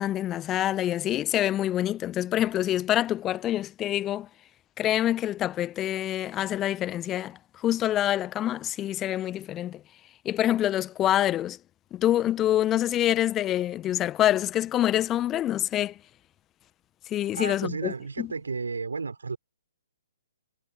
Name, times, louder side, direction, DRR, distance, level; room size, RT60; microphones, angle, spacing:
voice 1, 0.0-4.3 4.8-9.8 10.2-11.6 11.9-16.0 17.1-18.3, left 12 dB, 15° left, 1.4 m, -26 dB
voice 2, 17.3-19.4, right 4 dB, 65° right, 6.3 m, -33 dB
figure-of-eight pair, 125°, 0 cm